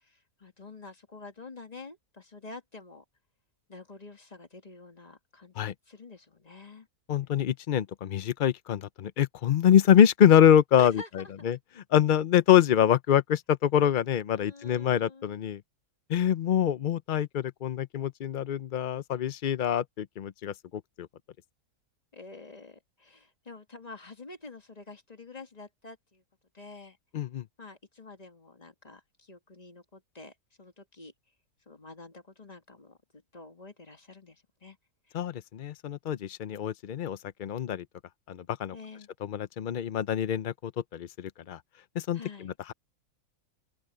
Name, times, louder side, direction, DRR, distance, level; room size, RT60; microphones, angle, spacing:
voice 1, 0.0-3.0 3.7-6.9 10.8-11.5 14.3-15.4 22.1-26.2 26.5-27.0 27.6-31.1 31.7-33.0 33.3-34.8 38.7-39.1 42.1-42.6, left 3 dB, 25° left, 1.9 m, -47 dB
voice 2, 7.1-15.6 16.1-20.5 21.0-21.1 27.1-27.4 35.1-37.8 38.3-38.8 39.2-41.6 42.0-42.7, left 9 dB, 85° left, 0.4 m, -25 dB
open air
omnidirectional pair, 1.6 m